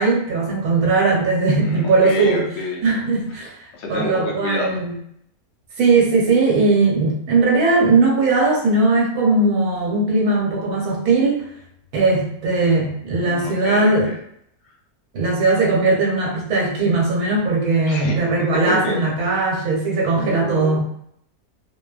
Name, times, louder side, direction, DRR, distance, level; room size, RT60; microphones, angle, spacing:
voice 1, 0.0-2.4 2.8-3.6 3.9-4.9 5.8-11.4 11.9-14.1 15.1-20.8, right 3 dB, 75° right, -2 dB, 1.2 m, -19 dB
voice 2, 1.6-2.8 3.7-4.8 13.2-14.1 17.9-18.2 18.5-19.0 20.1-20.8, left 3 dB, 65° left, -1 dB, 0.7 m, -28 dB
2.7 x 2.1 x 2.3 m, 0.71 s
omnidirectional pair, 1.6 m